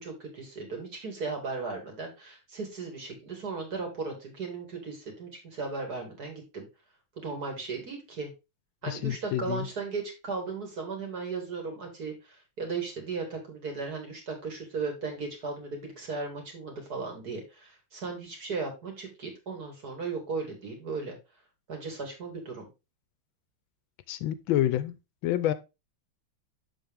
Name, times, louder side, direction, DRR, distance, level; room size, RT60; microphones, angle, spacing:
voice 1, 0.0-6.7 7.2-8.3 8.8-21.2 21.7-22.7, right 4 dB, 50° right, 2.7 m, -36 dB
voice 2, 8.9-9.7 24.1-24.9 25.2-25.5, left 12 dB, 75° left, 1.3 m, -28 dB
7.3 x 6.3 x 3.4 m
omnidirectional pair, 2.2 m